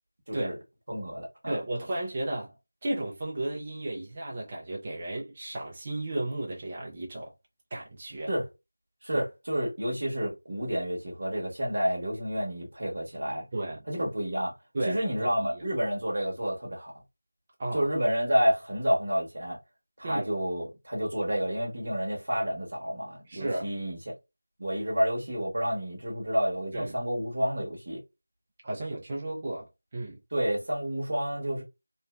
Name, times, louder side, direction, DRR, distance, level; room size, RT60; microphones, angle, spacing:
voice 1, 0.9-1.6 8.3-8.5 9.0-13.4 13.9-14.5 14.9-16.9 17.7-19.6 20.0-24.1 24.6-28.0 30.3-31.6, equal, 35° right, 0.9 m, -29 dB
voice 2, 1.5-2.6 2.8-7.3 7.7-8.3 9.1-9.2 13.5-13.8 14.7-15.6 17.6-17.9 20.0-20.3 23.3-23.7 26.7-26.9 28.6-30.2, right 1 dB, 15° right, 0.3 m, -34 dB
3.0 x 2.1 x 2.2 m
figure-of-eight pair, 180°, 0 cm